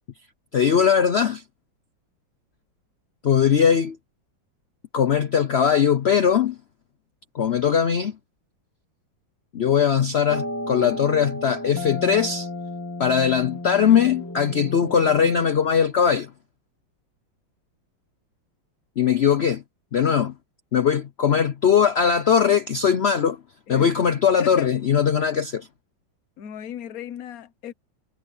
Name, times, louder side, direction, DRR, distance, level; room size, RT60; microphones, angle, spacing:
voice 1, 0.5-1.4 3.2-4.0 4.9-6.6 7.3-8.2 9.5-12.5 13.0-16.3 19.0-19.6 19.9-20.3 20.7-23.4 23.7-25.7, left 7 dB, 85° left, 0.5 m, -20 dB
sound 1, 10.3-15.4, left 1 dB, 10° left, 2.3 m, -33 dB
voice 2, 24.4-24.7 26.4-27.7, left 10 dB, 55° left, 1.4 m, -35 dB
omnidirectional pair, 2.1 m